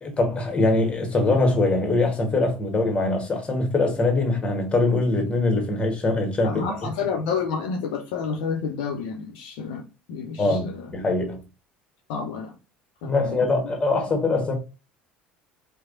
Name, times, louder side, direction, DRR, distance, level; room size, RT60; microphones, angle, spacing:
voice 1, 0.0-6.7 10.4-11.4 13.0-14.6, left 2 dB, 20° left, 1.2 m, -23 dB
voice 2, 6.4-9.8 10.1-10.9 12.1-12.5 13.0-13.5, left 5 dB, 60° left, 0.7 m, -29 dB
4.6 x 2.2 x 2.5 m
figure-of-eight pair, 65°, 6 cm